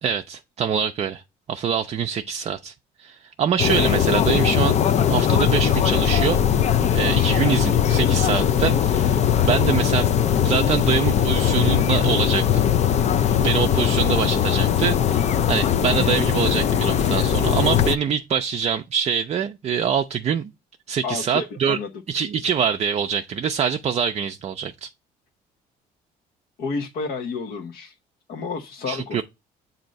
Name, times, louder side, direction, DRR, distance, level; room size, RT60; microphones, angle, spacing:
voice 1, 0.0-1.2 1.5-2.7 3.0-4.8 5.1-6.4 6.9-10.2 10.4-12.6 13.3-20.5 20.9-21.8 22.1-24.9 28.9-29.2, right 7 dB, 40° right, 0.5 m, -24 dB
sound 1, 3.6-18.0, left 9 dB, 40° left, 0.5 m, -20 dB
voice 2, 21.0-21.9 26.6-27.9 28.3-29.2, left 4 dB, 60° left, 0.9 m, -30 dB
7.5 x 2.7 x 5.1 m
cardioid pair, 110°, 17 cm